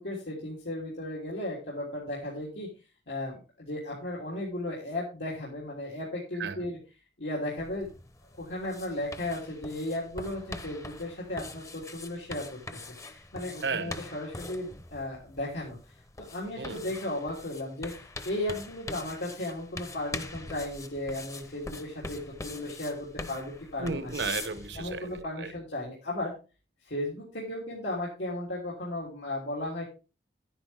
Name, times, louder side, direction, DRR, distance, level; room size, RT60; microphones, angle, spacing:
voice 1, 0.0-2.7 3.1-6.8 7.2-7.9 8.4-15.8 16.3-24.1 24.7-26.3 26.8-29.8, left 1 dB, 90° left, 3.3 m, -35 dB
sound 1, 7.6-25.2, left 2 dB, 15° left, 0.8 m, -43 dB
voice 2, 13.6-14.0 16.6-16.8 23.8-25.5, right 4 dB, 80° right, 1.1 m, -34 dB
10.5 x 10.0 x 3.5 m
head